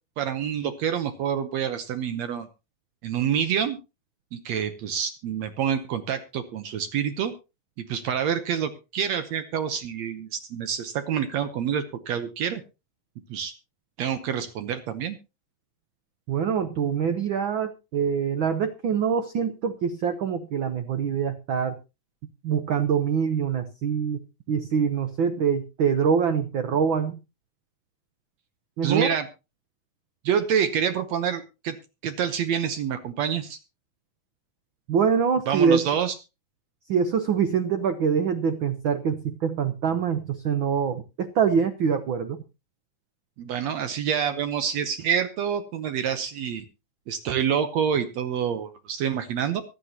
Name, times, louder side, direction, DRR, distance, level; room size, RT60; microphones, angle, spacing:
voice 1, 0.2-2.5 3.0-3.8 4.3-7.3 7.8-12.6 13.3-13.5 14.0-15.2 28.8-29.3 30.3-31.8 32.0-33.6 35.5-36.1 43.4-46.6 47.1-49.6, right 8 dB, 70° right, 10 dB, 2.0 m, -27 dB
voice 2, 16.3-21.8 22.4-27.2 28.8-29.1 34.9-35.9 36.9-42.4, right 6 dB, 85° right, 9 dB, 1.0 m, -24 dB
24.0 x 8.3 x 2.9 m, 0.28 s
omnidirectional pair, 3.4 m